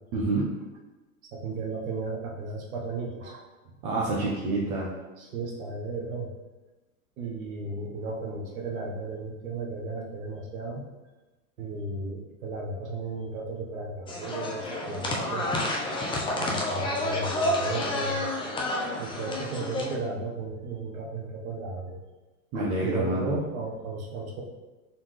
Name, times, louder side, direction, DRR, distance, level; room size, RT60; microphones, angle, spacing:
voice 1, 0.1-0.5 3.8-4.9 22.5-23.3, right 2 dB, 40° right, -5 dB, 1.0 m, -27 dB
voice 2, 1.2-3.4 4.5-4.9 5.2-6.3 7.2-10.8 11.6-15.5 16.4-18.3 19.0-22.0 22.5-24.4, right 3 dB, 70° right, 0 dB, 1.2 m, -35 dB
sound 1, 14.1-19.9, left 1 dB, 10° left, 0.5 m, -29 dB
4.2 x 3.6 x 3.2 m, 1.1 s
hypercardioid pair, 105°, 43 cm